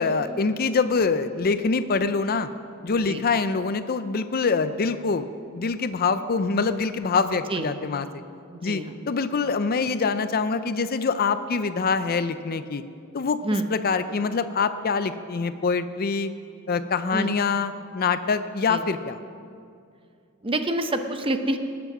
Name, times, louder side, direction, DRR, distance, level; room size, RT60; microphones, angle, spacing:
voice 1, 0.0-2.5 2.8-5.3 5.5-8.1 8.6-12.8 13.1-13.4 13.7-16.3 16.7-19.2, left 4 dB, 45° left, 12 dB, 0.5 m, -25 dB
voice 2, 7.5-7.8 8.5-9.4 13.4-13.7 17.1-17.3 18.7-18.8 20.4-21.6, right 1 dB, 25° right, 7 dB, 0.8 m, -28 dB
19.5 x 8.3 x 6.1 m, 2.4 s
head